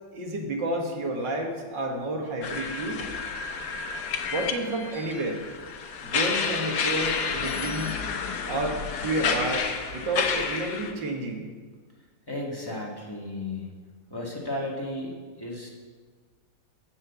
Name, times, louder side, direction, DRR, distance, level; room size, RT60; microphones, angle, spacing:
voice 1, 0.1-3.1 4.3-5.4 6.0-7.9 8.5-11.4, right 1 dB, 70° right, 2 dB, 2.2 m, -30 dB
sound 1, 2.4-10.9, left 5 dB, 65° left, 1.5 m, -30 dB
voice 2, 12.3-13.7 14.1-15.7, left 1 dB, 15° left, -3 dB, 1.7 m, -34 dB
15.0 x 5.6 x 6.8 m, 1.5 s
omnidirectional pair, 2.0 m